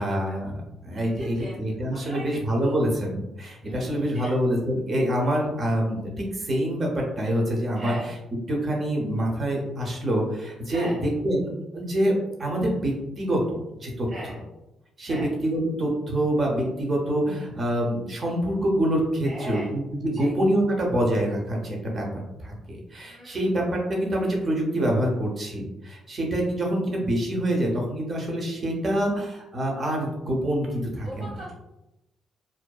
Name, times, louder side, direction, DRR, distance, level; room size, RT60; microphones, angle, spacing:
voice 1, 0.0-7.9 8.5-12.1 12.4-14.3 15.0-31.3, right 1 dB, 40° right, 0 dB, 0.7 m, -26 dB
voice 2, 1.2-1.6 1.9-2.4 2.6-2.7 3.6-4.3 7.8-8.0 10.7-11.0 14.1-14.4 15.1-15.3 19.2-19.7 20.1-20.3 23.0-23.5 31.0-31.5, right 1 dB, 60° right, -7 dB, 1.3 m, -39 dB
2.5 x 2.2 x 2.3 m, 0.92 s
cardioid pair, 90°, 0 cm